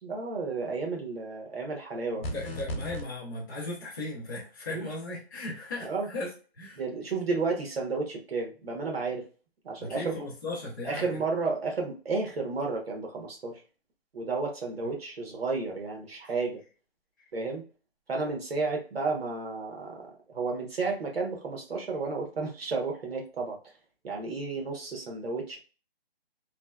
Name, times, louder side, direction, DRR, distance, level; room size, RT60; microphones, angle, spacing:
voice 1, 0.0-2.3 4.7-4.9 5.8-6.1 6.8-9.2 9.6-10.2 10.8-13.6 14.1-16.6 17.3-17.6 18.1-23.6 24.0-25.6, right 4 dB, 70° right, 1 dB, 1.2 m, -32 dB
voice 2, 2.1-6.3 6.6-6.8 9.8-11.2 14.8-14.9, left 2 dB, 20° left, -8 dB, 0.6 m, -37 dB
sound 1, 2.2-3.0, left 1 dB, 65° left, 1.1 m, -34 dB
3.2 x 2.1 x 2.3 m, 0.36 s
hypercardioid pair, 170°, 31 cm